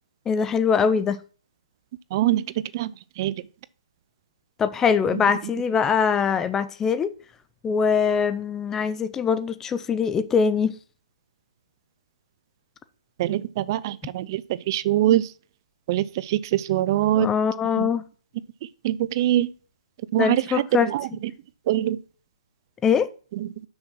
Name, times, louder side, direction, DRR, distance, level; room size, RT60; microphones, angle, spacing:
voice 1, 0.3-1.2 4.6-7.1 7.6-10.7 17.2-18.1 20.2-20.9 22.8-23.1, left 6 dB, 10° left, 0.5 m, -22 dB
voice 2, 2.1-2.4 2.7-3.3 5.1-5.2 13.2-15.3 15.9-17.3 17.7-17.9 18.8-19.5 20.1-21.1 21.7-22.0 23.4-23.5, right 13 dB, 35° right, 0.5 m, -23 dB
6.3 x 6.1 x 5.8 m
hypercardioid pair, 150°, 4 cm